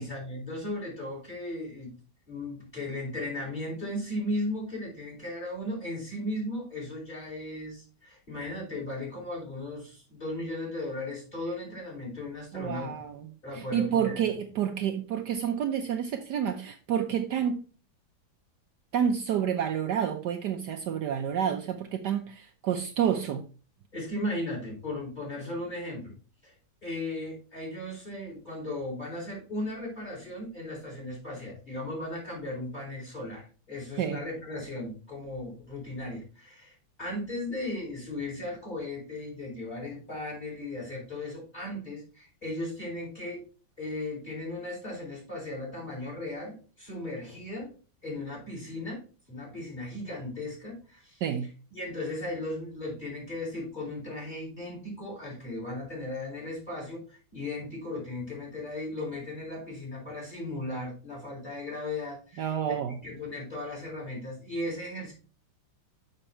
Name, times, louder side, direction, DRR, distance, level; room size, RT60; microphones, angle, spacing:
voice 1, 0.0-1.9 2.3-12.9 13.4-14.2 23.9-26.1 26.4-26.5 26.8-36.7 37.0-43.4 43.8-47.7 48.0-49.0 49.3-51.2 51.7-65.1, left 1 dB, 25° left, -2 dB, 4.5 m, -36 dB
voice 2, 12.5-13.3 13.5-17.6 18.9-23.4 34.0-34.2 51.2-51.5 62.4-63.0, right 8 dB, 70° right, 4 dB, 1.2 m, -29 dB
6.6 x 6.1 x 4.3 m, 0.36 s
omnidirectional pair, 2.1 m